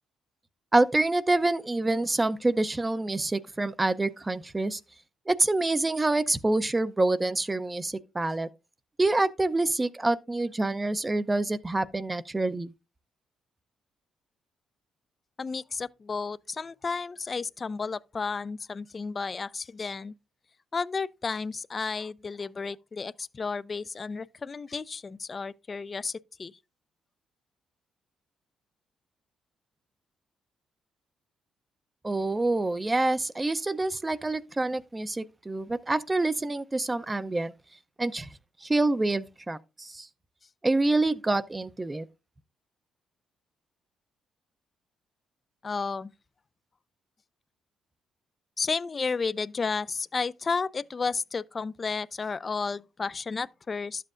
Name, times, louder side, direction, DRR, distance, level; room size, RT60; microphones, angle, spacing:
voice 1, 0.7-4.8 5.3-8.5 9.0-12.7 32.0-37.5 38.0-38.3 38.6-40.1 40.6-42.0, right 2 dB, 20° right, 0.6 m, -26 dB
voice 2, 15.4-20.1 20.7-26.5 45.6-46.1 48.6-54.0, left 4 dB, 35° left, 0.4 m, -32 dB
12.0 x 7.5 x 2.5 m
cardioid pair, 90°, 0 cm